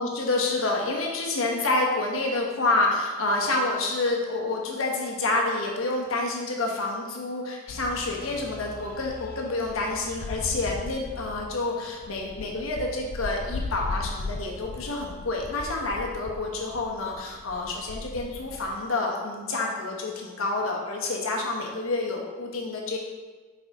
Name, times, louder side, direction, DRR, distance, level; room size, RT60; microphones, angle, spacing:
voice 1, 0.0-23.0, left 2 dB, 90° left, -1 dB, 1.1 m, -28 dB
sound 1, 7.7-18.9, left 3 dB, 45° left, 0.3 m, -38 dB
5.3 x 4.8 x 3.7 m, 1.4 s
head